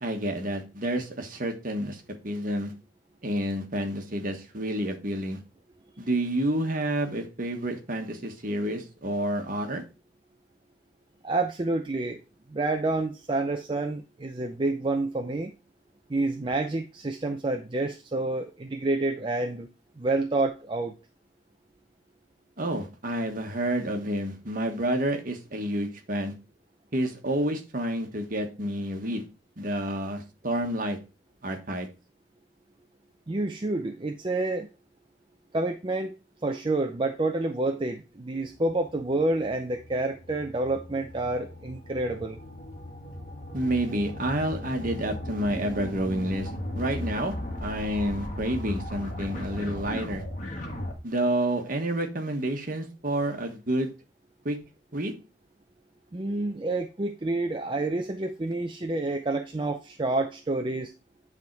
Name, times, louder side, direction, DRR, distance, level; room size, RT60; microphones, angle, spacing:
voice 1, 0.0-2.7 3.2-5.4 6.0-9.8 22.6-26.3 26.9-29.2 29.6-31.0 31.4-31.9 43.5-46.5 46.7-47.3 47.6-50.2 51.0-53.9 54.4-54.6 54.9-55.1, right 1 dB, 50° right, 4 dB, 1.4 m, -29 dB
voice 2, 11.2-12.2 12.5-15.5 16.1-19.7 20.0-20.9 33.3-34.7 35.5-36.1 36.4-42.4 56.1-60.9, right 2 dB, 25° right, 4 dB, 0.5 m, -28 dB
sound 1, 38.4-50.9, left 1 dB, 45° left, 1.7 m, -37 dB
9.2 x 3.6 x 4.6 m, 0.31 s
head